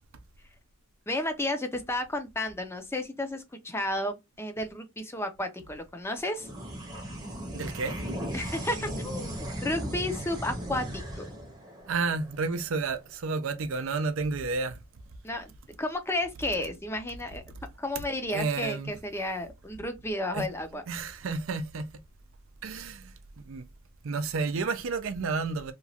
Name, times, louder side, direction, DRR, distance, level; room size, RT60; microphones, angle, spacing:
voice 1, 1.1-6.5 8.3-11.3 15.2-15.5 15.8-17.4 17.8-20.8, left 1 dB, 10° left, 0.5 m, -32 dB
sound 1, 6.4-13.1, equal, 20° right, 0.8 m, -37 dB
voice 2, 7.5-8.0 11.9-14.8 18.3-18.9 20.3-20.5 20.9-21.9 22.6-23.6 24.0-25.7, right 4 dB, 70° right, 0.5 m, -31 dB
2.9 x 2.3 x 2.7 m
head